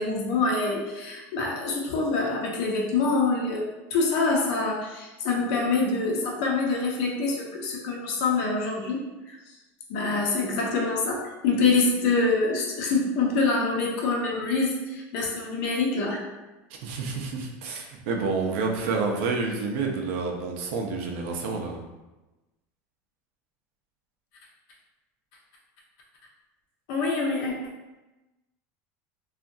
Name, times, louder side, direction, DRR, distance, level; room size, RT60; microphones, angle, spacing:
voice 1, 0.0-9.0 9.3-9.4 9.9-16.2 26.9-27.5, left 3 dB, 65° left, -1 dB, 0.7 m, -25 dB
voice 2, 16.8-21.8, right 4 dB, 70° right, 1 dB, 0.5 m, -29 dB
2.8 x 2.4 x 2.6 m, 1.1 s
cardioid pair, 155°, 7 cm